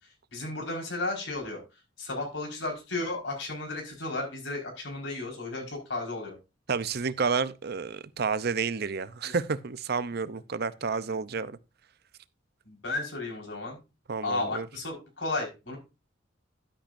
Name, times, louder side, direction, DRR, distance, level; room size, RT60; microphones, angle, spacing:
voice 1, 0.3-1.6 2.0-6.4 9.2-9.3 10.9-11.0 12.6-13.8 14.2-15.8, left 2 dB, 70° left, 4.9 m, -34 dB
voice 2, 6.7-11.6 14.1-14.7, right 5 dB, 55° right, 0.7 m, -30 dB
12.0 x 10.0 x 2.6 m
head